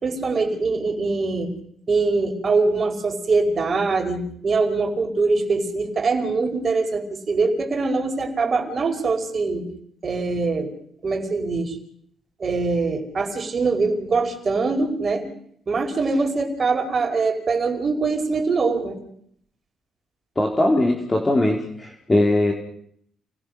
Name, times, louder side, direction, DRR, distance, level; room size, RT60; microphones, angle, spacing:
voice 1, 0.0-1.5 1.9-9.7 10.0-10.7 11.0-11.8 12.4-15.3 15.7-19.0, right 3 dB, 40° right, 5 dB, 5.0 m, -23 dB
voice 2, 20.4-22.5, left 1 dB, 20° left, 1 dB, 4.0 m, -20 dB
29.0 x 20.5 x 6.6 m, 0.68 s
cardioid pair, 90°, 0 cm